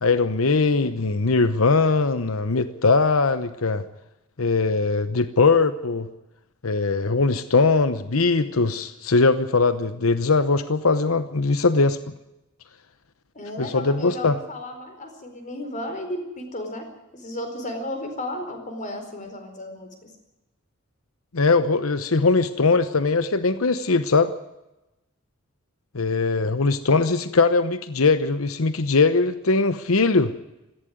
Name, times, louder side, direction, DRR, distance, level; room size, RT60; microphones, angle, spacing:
voice 1, 0.0-3.8 4.4-6.1 6.6-12.0 13.6-14.4 21.3-24.3 25.9-30.3, left 3 dB, 80° left, 12 dB, 1.0 m, -20 dB
voice 2, 13.3-16.8 17.1-20.1, left 1 dB, 35° left, 5 dB, 4.6 m, -34 dB
18.0 x 15.5 x 9.6 m, 0.95 s
head